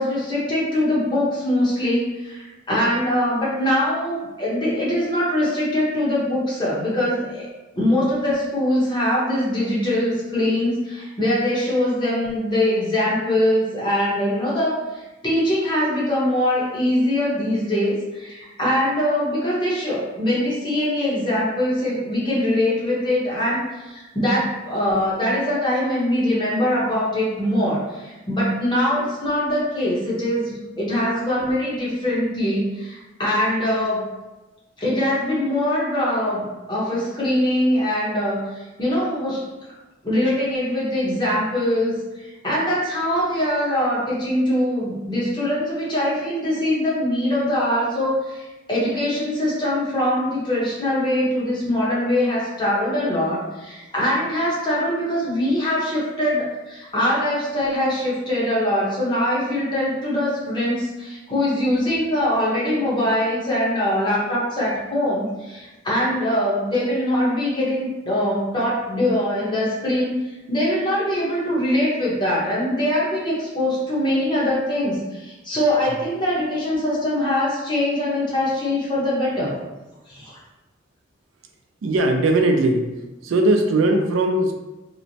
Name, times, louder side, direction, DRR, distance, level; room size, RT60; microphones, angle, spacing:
voice 1, 0.0-7.5 7.8-34.0 34.8-39.4 40.0-70.2 70.5-79.6 80.1-80.4, left 1 dB, 25° left, -6 dB, 0.9 m, -22 dB
voice 2, 81.8-82.9 83.2-84.5, right 2 dB, 85° right, 4 dB, 0.4 m, -19 dB
3.0 x 2.1 x 2.7 m, 1.1 s
head